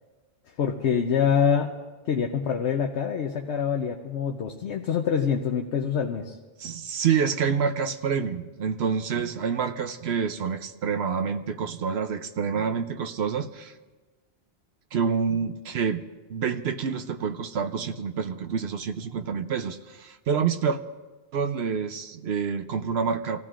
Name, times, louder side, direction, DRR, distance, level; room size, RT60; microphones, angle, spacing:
voice 1, 0.6-1.8 2.1-6.4, left 7 dB, 90° left, 2 dB, 1.1 m, -25 dB
voice 2, 6.6-13.7 14.9-16.0 16.3-20.8 21.3-23.4, right 6 dB, 75° right, 8 dB, 0.9 m, -27 dB
27.0 x 15.5 x 2.5 m, 1.3 s
omnidirectional pair, 1.1 m